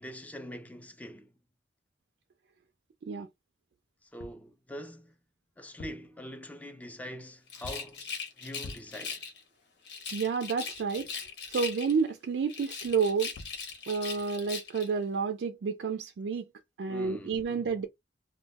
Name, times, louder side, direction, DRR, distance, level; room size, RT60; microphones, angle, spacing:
voice 1, 0.0-1.3 4.0-5.2 5.6-8.1 8.4-9.2 16.8-17.7, equal, 10° left, 0.3 m, -44 dB
sound 1, 4.0-4.5 5.6-6.2 7.6-8.0 8.6-9.0 13.1-13.2 13.4-13.7, left 2 dB, 90° left, 0.4 m, -46 dB
Rattle, 7.5-9.4 9.8-12.1 12.5-14.9, left 5 dB, 70° left, 1.0 m, -40 dB
voice 2, 10.1-11.1 11.5-13.3 13.9-16.5 16.8-17.9, right 5 dB, 75° right, 0.4 m, -30 dB
2.2 x 2.0 x 3.4 m
head